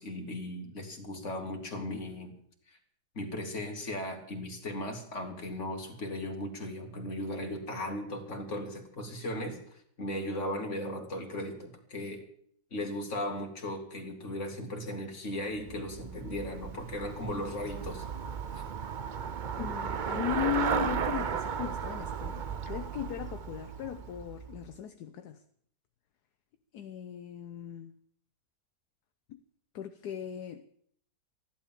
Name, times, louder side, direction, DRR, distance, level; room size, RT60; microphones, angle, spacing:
voice 1, 0.0-2.3 3.1-12.2 12.7-18.1, left 1 dB, 45° left, 2.6 m, -37 dB
Traffic noise roadway noise / Bicycle, 15.5-24.7, right 7 dB, 65° right, 0.4 m, -35 dB
voice 2, 19.6-25.4 26.7-27.9 29.3-29.4 29.7-30.6, left 11 dB, 70° left, 1.3 m, -37 dB
14.0 x 11.5 x 7.3 m
omnidirectional pair, 1.8 m